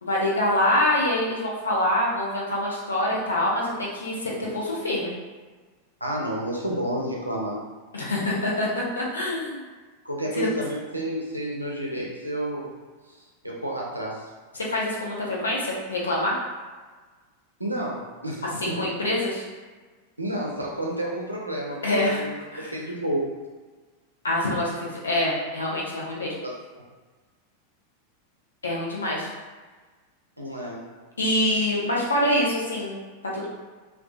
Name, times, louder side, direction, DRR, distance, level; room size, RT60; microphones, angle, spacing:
voice 1, 0.0-5.1 7.9-9.6 10.3-10.5 14.5-16.4 18.6-19.4 21.8-22.2 22.5-22.7 24.2-26.3 28.6-29.3 31.2-33.0 33.3-33.5, left 1 dB, 75° left, -4 dB, 0.6 m, -25 dB
voice 2, 6.0-7.6 10.0-12.7 13.4-14.3 17.6-18.9 20.2-22.3 22.6-23.3 26.4-26.8 30.4-30.8, right 1 dB, 90° right, -3 dB, 0.5 m, -30 dB
2.6 x 2.2 x 2.2 m, 1.4 s
figure-of-eight pair, 90°, 0 cm